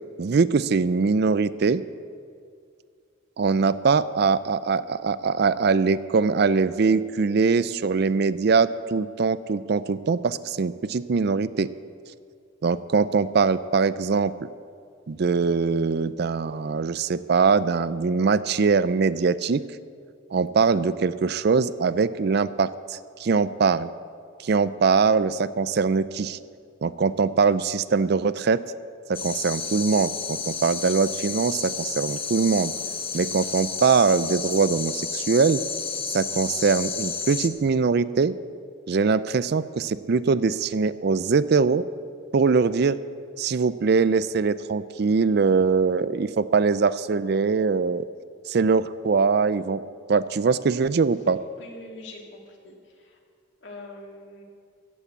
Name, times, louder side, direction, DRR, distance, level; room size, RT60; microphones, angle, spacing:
voice 1, 0.2-1.8 3.4-11.7 12.6-14.5 15.1-19.6 20.3-23.9 24.4-26.4 26.8-28.6 29.1-32.7 33.1-35.6 36.1-38.4 38.9-41.9 42.3-43.0 43.4-48.1 48.5-49.8 50.1-51.4, right 5 dB, 55° right, 16 dB, 0.4 m, -22 dB
sound 1, 29.1-37.5, left 6 dB, 30° left, 1.0 m, -31 dB
voice 2, 51.6-53.2 53.6-54.4, left 2 dB, 65° left, 0 dB, 2.5 m, -43 dB
15.0 x 8.5 x 8.3 m, 2.2 s
head